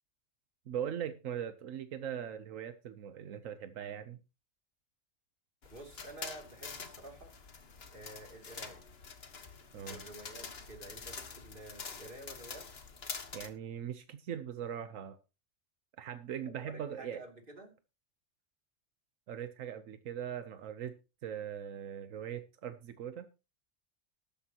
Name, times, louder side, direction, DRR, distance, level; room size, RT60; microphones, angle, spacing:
voice 1, 0.7-4.2 9.7-10.0 13.3-15.2 16.0-17.2 19.3-20.9 21.2-23.3, right 9 dB, 85° right, 10 dB, 1.2 m, -40 dB
sound 1, 5.6-13.5, left 5 dB, 50° left, 1.5 m, -46 dB
voice 2, 5.7-7.3 7.9-8.8 9.9-12.7 16.4-17.8, right 2 dB, 40° right, 3 dB, 3.0 m, -50 dB
14.0 x 12.0 x 2.9 m, 0.30 s
omnidirectional pair, 1.3 m